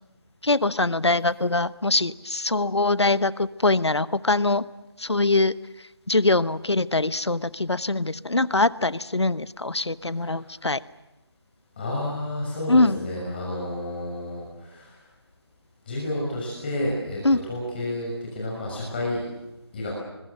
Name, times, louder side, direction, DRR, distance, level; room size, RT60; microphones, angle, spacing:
voice 1, 0.4-4.6 5.0-10.8 12.7-13.0 17.2-17.4, left 2 dB, 80° left, 17 dB, 1.0 m, -23 dB
voice 2, 10.1-10.5 11.8-15.0 15.9-19.2 19.7-19.9, left 1 dB, 20° left, -4 dB, 6.2 m, -30 dB
25.0 x 22.0 x 7.7 m, 0.99 s
figure-of-eight pair, 165°, 14 cm